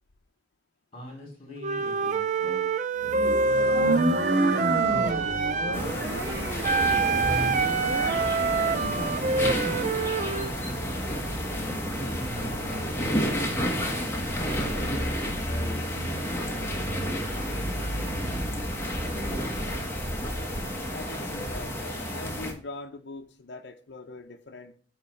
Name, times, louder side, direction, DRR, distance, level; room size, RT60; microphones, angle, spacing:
voice 1, 0.9-2.6 3.0-5.4 5.8-7.8 8.4-8.8 9.1-14.9 15.5-18.2 18.9-19.7, left 1 dB, 30° left, 3.2 m, -45 dB
Wind instrument woodwind instrument, 1.6-5.8 6.6-10.5, right 4 dB, 40° right, 0.4 m, -26 dB
sound 1, 3.0-9.8, right 2 dB, 70° right, 1.3 m, -30 dB
sound 2, 5.7-22.5, equal, 15° left, 1.2 m, -30 dB
voice 2, 20.9-24.8, left 3 dB, 75° left, 0.6 m, -42 dB
8.6 x 3.1 x 5.5 m
head